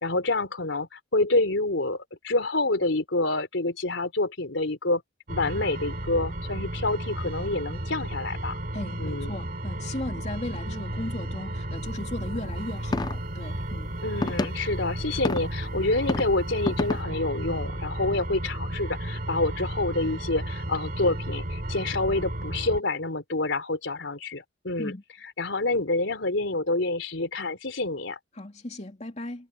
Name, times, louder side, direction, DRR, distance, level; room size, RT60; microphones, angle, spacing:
voice 1, 0.0-5.0 5.3-8.6 9.0-9.3 14.0-24.9 25.4-28.2, left 2 dB, 80° left, 3.5 m, -27 dB
sound 1, 5.3-22.8, right 1 dB, 50° right, 3.6 m, -33 dB
voice 2, 8.7-13.9 24.8-25.0 28.3-29.5, left 1 dB, 35° left, 3.0 m, -36 dB
sound 2, 12.9-13.1 14.2-14.5 15.2-15.4 16.0-16.2 16.7-17.0, left 2 dB, 20° left, 0.4 m, -26 dB
head